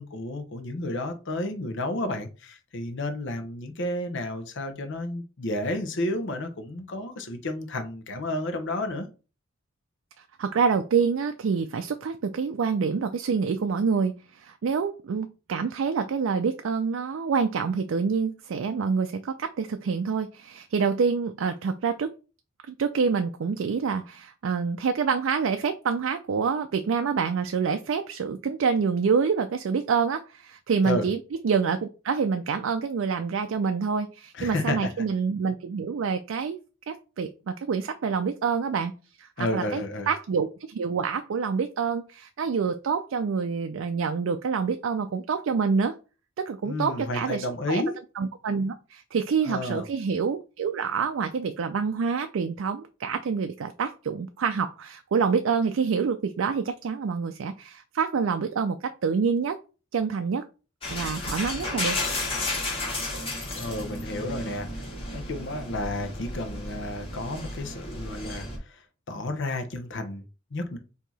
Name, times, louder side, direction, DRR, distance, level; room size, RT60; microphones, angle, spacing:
voice 1, 0.0-9.1 30.8-31.0 34.4-34.9 39.4-40.1 46.6-47.9 49.4-49.9 63.6-64.7 65.1-70.2 70.5-70.8, left 1 dB, 65° left, 7 dB, 0.8 m, -31 dB
voice 2, 10.4-22.1 22.7-31.2 31.4-36.6 36.9-38.9 39.2-46.0 46.4-47.8 48.2-59.6 59.9-60.4 60.9-62.0, right 5 dB, 70° right, 7 dB, 0.4 m, -27 dB
sound 1, 60.8-68.6, left 2 dB, 30° left, 1.4 m, -33 dB
4.7 x 2.8 x 4.0 m, 0.34 s
head